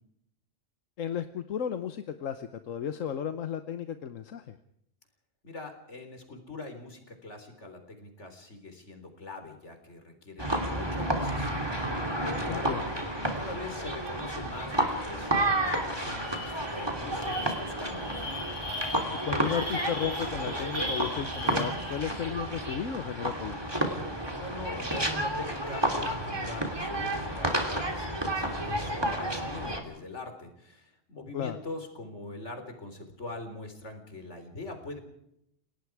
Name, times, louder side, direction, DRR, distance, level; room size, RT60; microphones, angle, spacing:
voice 1, 1.0-4.6 12.5-12.8 19.2-23.7 31.3-31.6, left 8 dB, 85° left, 10 dB, 1.3 m, -34 dB
voice 2, 5.4-11.7 12.2-12.8 13.4-18.2 24.4-35.0, left 2 dB, 65° left, 6 dB, 4.2 m, -42 dB
sound 1, 10.4-29.8, right 1 dB, 20° right, 3.1 m, -31 dB
sound 2, 15.5-15.6 15.9-22.3, left 1 dB, 80° right, 7.1 m, -39 dB
29.5 x 18.5 x 4.8 m, 0.77 s
omnidirectional pair, 1.3 m